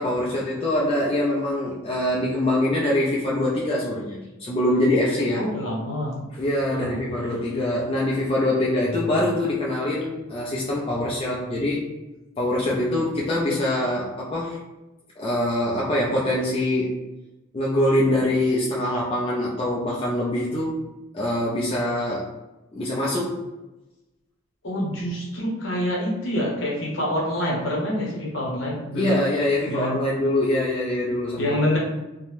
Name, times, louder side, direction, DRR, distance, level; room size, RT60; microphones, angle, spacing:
voice 1, 0.0-5.5 6.3-11.9 12.4-14.6 15.2-17.0 17.5-20.9 21.1-22.3 22.7-23.4 28.9-31.6, left 1 dB, 25° left, -5 dB, 0.3 m, -24 dB
voice 2, 5.4-6.1 6.7-7.0 24.6-29.2 29.6-30.0 31.4-31.8, equal, 65° left, -3 dB, 0.9 m, -26 dB
2.6 x 2.1 x 3.1 m, 1.0 s
head